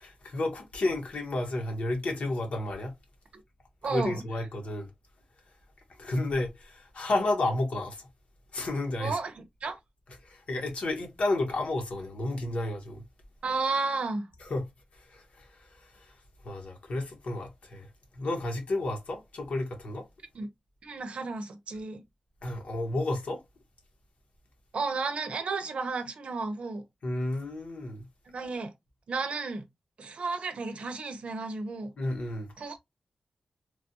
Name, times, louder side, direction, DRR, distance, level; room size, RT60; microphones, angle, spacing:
voice 1, 0.0-2.9 3.9-4.9 6.0-8.1 8.5-9.2 10.2-13.0 14.4-14.7 14.9-16.1 16.4-17.9 18.1-20.1 22.4-23.4 27.0-28.0 32.0-32.5, left 2 dB, 75° left, 1.1 m, -31 dB
voice 2, 3.8-4.2 9.0-9.8 13.4-14.3 20.3-20.5 20.8-22.0 24.7-26.8 28.3-28.7 29.1-29.6 30.0-31.9 32.6-32.8, right 3 dB, 70° right, 0.6 m, -33 dB
3.2 x 2.3 x 2.7 m
wide cardioid pair, 95°, 2 cm